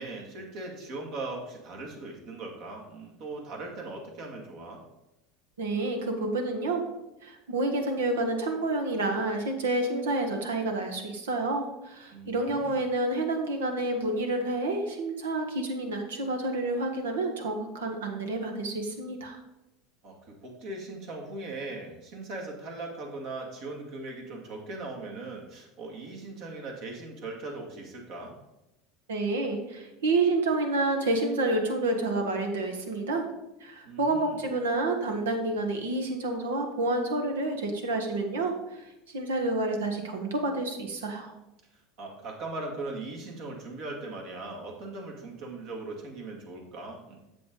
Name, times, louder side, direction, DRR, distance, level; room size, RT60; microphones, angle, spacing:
voice 1, 0.0-4.8 12.1-12.8 20.0-28.3 33.8-34.4 42.0-47.2, right 2 dB, 60° right, 0 dB, 2.3 m, -39 dB
voice 2, 5.6-6.8 7.2-19.4 29.1-33.3 33.6-41.3, right 2 dB, 85° right, 4 dB, 1.3 m, -29 dB
7.6 x 6.8 x 3.9 m, 0.93 s
hypercardioid pair, 90°, 0 cm